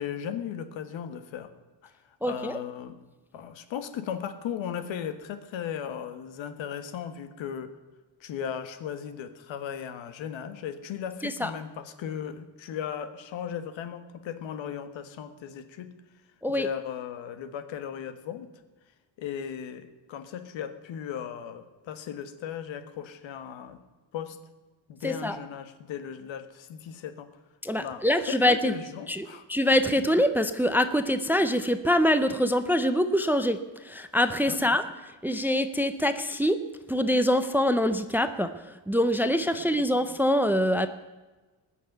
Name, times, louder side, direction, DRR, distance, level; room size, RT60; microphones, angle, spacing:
voice 1, 0.0-1.5 1.8-1.9 2.2-3.0 3.3-7.7 8.2-15.9 16.5-18.5 19.2-23.8 24.1-24.4 24.9-27.3 27.8-29.4 34.5-34.7 39.5-39.8, left 8 dB, 85° left, 10 dB, 1.5 m, -37 dB
voice 2, 2.2-2.6 11.2-11.5 16.4-16.7 25.0-25.4 27.6-28.7 29.1-34.8 35.2-36.6 36.9-38.5 38.9-40.9, equal, 5° right, 10 dB, 0.4 m, -24 dB
20.0 x 6.6 x 9.2 m, 1.2 s
cardioid pair, 175°, 44 cm